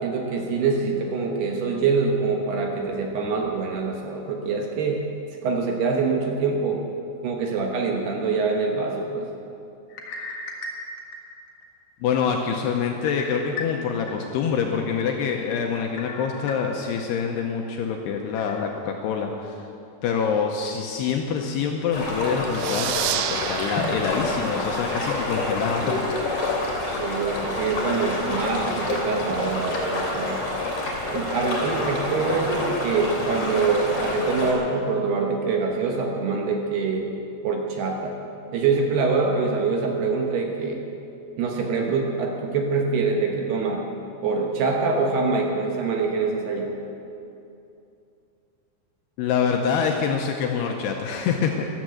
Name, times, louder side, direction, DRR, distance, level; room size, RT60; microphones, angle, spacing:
voice 1, 0.0-5.0 5.4-6.8 7.2-9.3 27.0-30.4 31.0-37.1 37.4-38.2 38.5-40.8 41.4-43.8 44.2-46.7, right 4 dB, 70° right, 1 dB, 2.8 m, -25 dB
sound 1, 9.9-11.7 12.1-12.2 13.1-14.1 14.6-14.7 16.0-17.0 17.5-17.6 18.4-18.6, left 3 dB, 60° left, 2.1 m, -36 dB
voice 2, 12.0-19.6 20.0-25.9 49.2-51.6, left 6 dB, 75° left, 2 dB, 2.5 m, -26 dB
sound 2, 21.9-34.5, left 2 dB, 35° left, 3.0 m, -28 dB
sound 3, 22.5-25.8, right 14 dB, 90° right, 2.4 m, -32 dB
13.5 x 12.5 x 7.9 m, 2.7 s
omnidirectional pair, 5.6 m